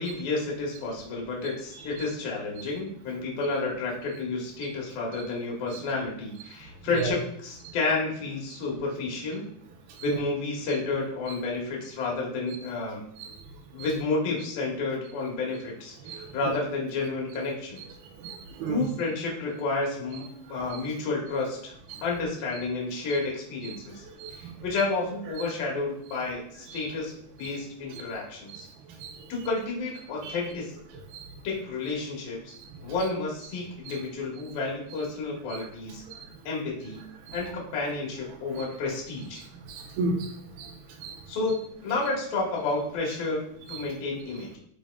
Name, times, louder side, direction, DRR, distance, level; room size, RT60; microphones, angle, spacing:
voice 1, 0.0-9.5 10.0-13.0 13.7-17.8 18.7-21.7 22.0-24.0 24.3-28.7 29.3-30.7 31.4-32.5 32.8-36.0 36.4-37.0 37.3-39.4 41.3-44.6, left 3 dB, 65° left, -2 dB, 3.2 m, -31 dB
voice 2, 18.2-18.8 21.9-22.0 24.2-24.3 28.5-28.6 29.0-29.1 30.2-30.3 31.1-31.2 35.5-35.6 37.3-37.4 39.7-40.3 40.6-40.7 41.0-41.1, right 3 dB, 75° right, 4 dB, 2.5 m, -32 dB
11.0 x 3.9 x 2.3 m, 0.67 s
omnidirectional pair, 4.6 m